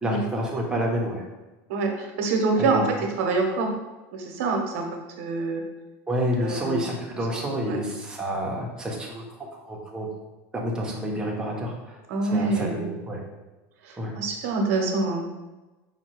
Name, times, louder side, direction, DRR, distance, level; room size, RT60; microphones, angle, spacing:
voice 1, 0.0-1.2 2.6-2.8 6.1-9.2 9.7-10.1 10.5-12.0 12.3-13.2 14.0-14.1, equal, 10° right, -2 dB, 0.7 m, -29 dB
voice 2, 1.7-3.7 4.1-4.9 5.2-5.6 6.4-6.8 7.3-7.4 7.6-7.8 12.1-12.8 13.8-15.2, right 3 dB, 75° right, 2 dB, 0.8 m, -26 dB
5.3 x 2.2 x 3.0 m, 1.1 s
supercardioid pair, 140°, 7 cm